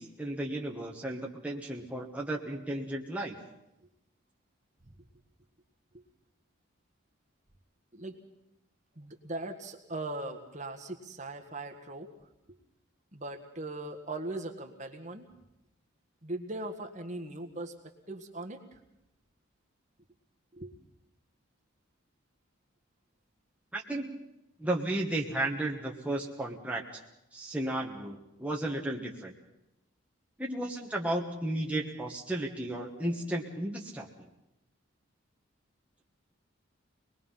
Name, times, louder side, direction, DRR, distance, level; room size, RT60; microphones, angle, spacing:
voice 1, 0.0-3.4 23.7-24.2 24.6-26.8 27.3-29.3 30.4-34.3, right 1 dB, 5° right, -1 dB, 1.4 m, -34 dB
voice 2, 8.9-12.1 13.1-15.3 16.2-18.8 20.5-20.7, right 2 dB, 35° right, 5 dB, 1.7 m, -40 dB
25.0 x 20.5 x 5.7 m, 0.87 s
head